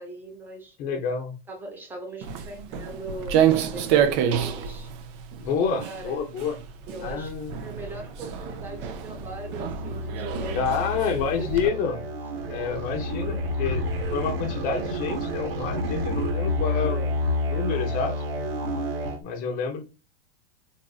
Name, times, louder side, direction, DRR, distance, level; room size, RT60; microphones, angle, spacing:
voice 1, 0.0-0.8 1.5-4.9 5.6-6.2 6.9-7.3 7.6-12.0, right 2 dB, 5° right, 0.7 m, -40 dB
voice 2, 0.8-1.4 5.4-6.6 7.0-7.6 10.5-12.0 12.5-13.8 14.1-17.2 17.5-18.2 19.2-19.9, left 6 dB, 30° left, 0.7 m, -28 dB
Walk footsteps, 2.2-11.7, right 9 dB, 30° right, 0.4 m, -28 dB
sound 1, 7.8-19.2, left 1 dB, 80° right, 1.2 m, -30 dB
4.0 x 2.5 x 2.3 m
supercardioid pair, 150°, 29 cm